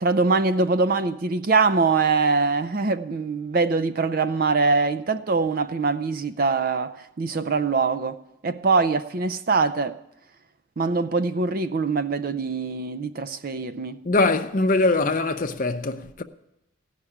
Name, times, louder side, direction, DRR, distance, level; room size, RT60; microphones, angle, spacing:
voice 1, 0.0-9.9 10.8-14.0, right 4 dB, 45° right, 0.4 m, -23 dB
voice 2, 14.0-16.2, left 2 dB, 40° left, 0.6 m, -22 dB
16.5 x 5.9 x 9.9 m
head